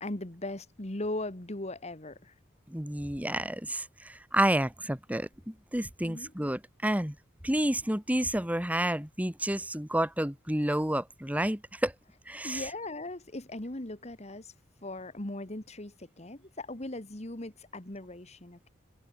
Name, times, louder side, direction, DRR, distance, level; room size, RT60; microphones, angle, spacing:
voice 1, 0.0-2.3 6.0-6.3 12.4-14.5 14.8-18.7, left 2 dB, 35° left, 2.0 m, -39 dB
voice 2, 2.7-7.2 7.4-11.9 12.3-12.6, right 1 dB, 10° right, 1.9 m, -30 dB
head